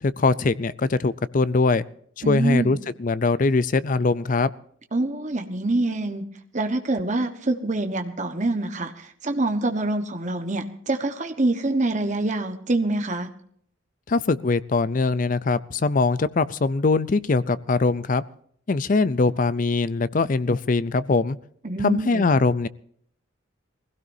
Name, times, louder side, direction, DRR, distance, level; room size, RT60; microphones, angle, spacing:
voice 1, 0.0-1.8 2.2-4.5 14.1-18.2 18.7-21.4 21.8-22.7, left 3 dB, 40° left, 17 dB, 0.5 m, -22 dB
voice 2, 2.2-2.8 4.9-6.3 6.5-13.3 21.6-22.2, right 2 dB, 35° right, 6 dB, 1.2 m, -25 dB
22.5 x 16.5 x 2.7 m, 0.63 s
head